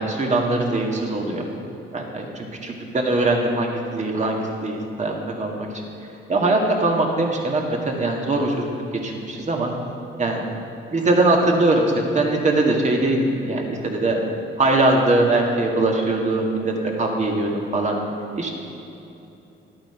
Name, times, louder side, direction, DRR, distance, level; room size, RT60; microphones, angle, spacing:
voice 1, 0.0-1.4 1.9-5.7 6.3-8.7 9.0-9.7 10.2-10.4 10.9-14.2 14.6-18.0 18.4-18.5, right 2 dB, 35° right, 1 dB, 1.9 m, -21 dB
12.0 x 8.7 x 5.7 m, 2.9 s
cardioid pair, 90°, 20 cm